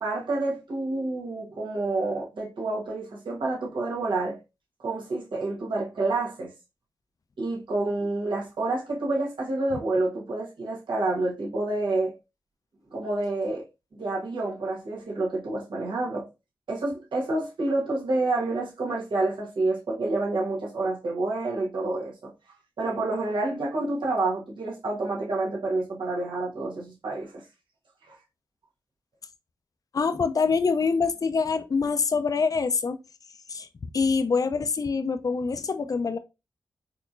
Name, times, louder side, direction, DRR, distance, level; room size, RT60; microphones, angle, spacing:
voice 1, 0.0-4.4 4.8-6.5 7.4-12.1 12.9-13.6 13.9-16.2 16.7-22.3 22.8-27.4, right 2 dB, 70° right, 1.3 m, -28 dB
voice 2, 29.9-33.0 33.5-33.7 33.9-36.2, left 5 dB, 45° left, 0.4 m, -25 dB
4.4 x 2.9 x 2.4 m
cardioid pair, 45°, 8 cm